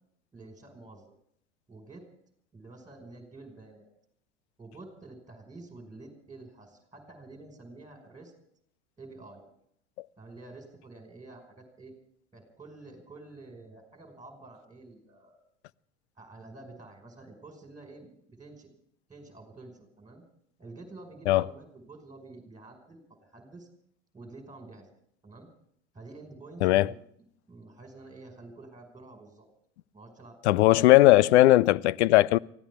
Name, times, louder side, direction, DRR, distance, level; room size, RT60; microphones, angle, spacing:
voice 1, 0.3-1.1 1.7-2.0 2.5-3.9 4.6-8.3 9.0-9.5 10.2-12.0 12.3-15.4 16.2-18.8 19.1-20.2 20.6-23.7 24.1-24.9 25.2-25.5 25.9-26.9 27.5-29.5 29.9-30.6, right 2 dB, 10° right, 5.3 m, -49 dB
voice 2, 26.6-26.9 30.4-32.4, left 17 dB, 70° left, 0.6 m, -19 dB
24.5 x 16.0 x 3.6 m
hypercardioid pair, 85°, 35 cm